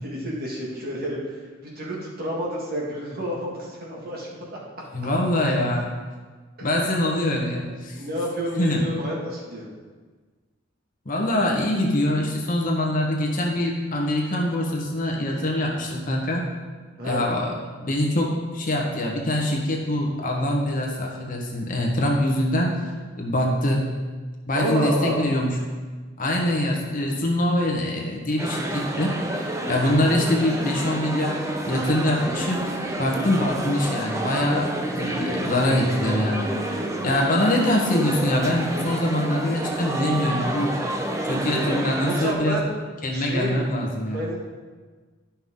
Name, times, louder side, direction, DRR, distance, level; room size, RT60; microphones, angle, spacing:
voice 1, 0.0-4.6 6.6-6.7 7.9-9.7 17.0-17.3 24.5-25.3 41.5-42.7 43.1-43.7 44.1-44.4, right 1 dB, 50° right, -3 dB, 1.9 m, -30 dB
voice 2, 4.9-5.9 6.6-8.0 8.6-8.8 11.0-16.5 17.1-17.5 17.8-22.8 23.2-23.9 24.5-25.6 26.2-29.1 29.7-31.4 31.6-32.7 33.0-36.8 37.0-40.7 41.3-42.6 43.0-44.2, left 1 dB, 45° left, -1 dB, 1.3 m, -24 dB
sound 1, 28.4-42.3, right 1 dB, 15° right, 0.7 m, -29 dB
11.0 x 5.7 x 3.7 m, 1.4 s
head